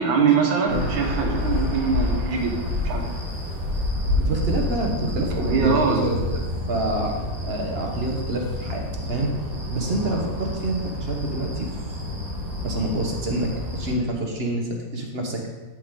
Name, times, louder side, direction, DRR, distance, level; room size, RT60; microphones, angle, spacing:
voice 1, 0.0-2.5 2.8-3.1 5.4-6.1, right 5 dB, 85° right, 2 dB, 1.9 m, -22 dB
sound 1, 0.7-13.9, left 1 dB, 55° right, 2.5 m, -28 dB
voice 2, 4.2-6.4 6.7-8.8 9.1-9.3 9.7-11.7 12.6-15.4, right 2 dB, 40° right, 1 dB, 1.0 m, -27 dB
10.5 x 5.0 x 3.7 m, 1.2 s
omnidirectional pair, 2.1 m